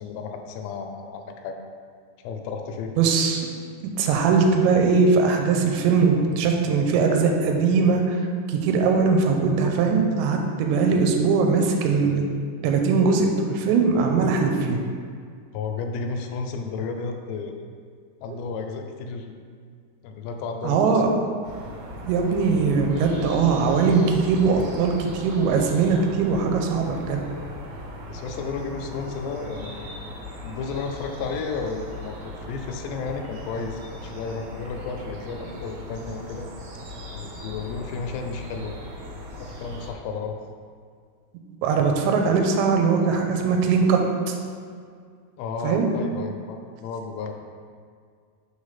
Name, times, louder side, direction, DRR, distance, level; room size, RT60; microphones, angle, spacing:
voice 1, 0.0-1.6 2.2-2.9 15.5-17.6 18.2-19.3 20.0-21.0 28.1-29.9 30.4-36.5 37.1-38.8 39.4-40.4 45.4-47.3, left 4 dB, 85° left, 4 dB, 2.6 m, -32 dB
voice 2, 3.0-3.5 4.0-8.2 8.5-12.2 12.6-14.8 18.3-18.4 20.6-21.1 22.0-27.2 41.6-44.0 44.3-44.4 45.6-45.9, right 5 dB, 85° right, 3 dB, 2.8 m, -21 dB
sound 1, 21.4-39.9, left 1 dB, 60° right, 2.4 m, -38 dB
6.3 x 3.2 x 5.7 m, 2.1 s
omnidirectional pair, 5.0 m